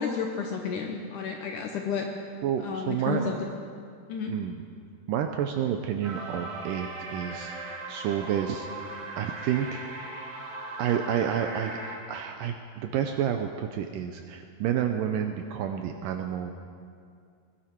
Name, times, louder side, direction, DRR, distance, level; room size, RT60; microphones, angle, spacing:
voice 1, 0.0-2.1 2.6-3.4 4.1-4.3, left 6 dB, 75° left, 3 dB, 1.8 m, -31 dB
voice 2, 2.4-3.3 4.3-4.6 5.1-7.5 7.9-8.7 9.2-9.8 10.8-11.8 12.1-16.5, right 9 dB, 80° right, 5 dB, 2.0 m, -29 dB
sound 1, 6.0-12.0, right 2 dB, 50° right, 3.2 m, -38 dB
20.5 x 12.0 x 4.5 m, 2.3 s
omnidirectional pair, 4.4 m